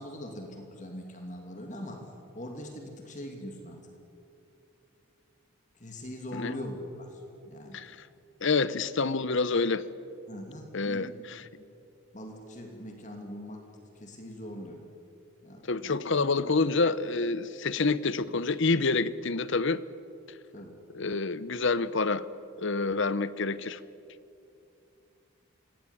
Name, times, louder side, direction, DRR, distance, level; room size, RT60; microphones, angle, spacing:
voice 1, 0.0-2.0 2.3-3.8 5.7-7.8 10.3-11.1 11.6-11.7 12.1-13.6 13.9-14.8 15.4-16.0 20.5-20.7, left 1 dB, 35° left, 3 dB, 2.7 m, -41 dB
voice 2, 7.7-8.1 8.4-9.8 10.7-11.4 15.7-19.8 20.9-22.3 22.6-23.8, left 3 dB, 55° left, 16 dB, 0.8 m, -27 dB
26.0 x 18.0 x 10.0 m, 2.7 s
head